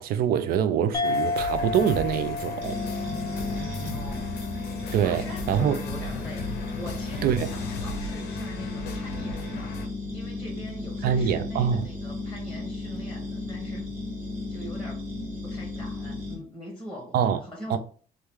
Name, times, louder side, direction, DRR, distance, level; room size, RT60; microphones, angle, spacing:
voice 1, 0.0-2.8 4.9-5.8 7.2-7.5 11.0-11.9 17.1-17.4 17.7-17.8, right 8 dB, 65° right, 0.4 m, -25 dB
sound 1, 0.9-5.9, left 3 dB, 20° left, 0.5 m, -32 dB
sound 2, 1.0-9.9, left 3 dB, 75° left, 0.6 m, -37 dB
sound 3, 2.6-16.3, left 2 dB, 45° right, 1.3 m, -34 dB
voice 2, 3.9-4.5 5.0-6.5 6.7-9.8 10.1-13.9 14.5-15.0 15.4-17.8, equal, 5° left, 1.0 m, -42 dB
3.0 x 2.2 x 3.4 m
cardioid pair, 110°, 17 cm